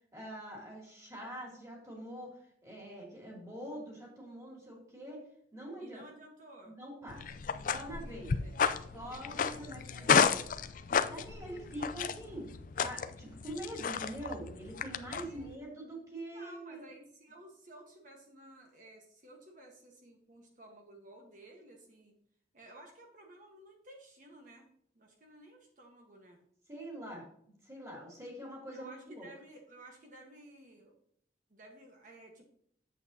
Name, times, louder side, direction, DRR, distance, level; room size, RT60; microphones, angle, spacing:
voice 1, 0.1-2.3 2.6-5.2 5.5-6.0 6.6-8.4 8.9-10.2 11.1-12.5 12.8-16.8 26.7-27.2 27.6-29.3, right 1 dB, 15° right, -2 dB, 2.7 m, -44 dB
voice 2, 5.8-6.8 8.0-8.8 9.2-10.2 11.7-11.8 15.2-15.5 16.3-22.1 22.5-24.7 24.9-26.4 28.7-30.9 31.5-32.5, right 1 dB, 45° right, 1 dB, 1.3 m, -55 dB
sound 1, 7.1-15.5, left 6 dB, 45° left, 0.4 m, -32 dB
9.0 x 7.8 x 2.8 m, 0.67 s
head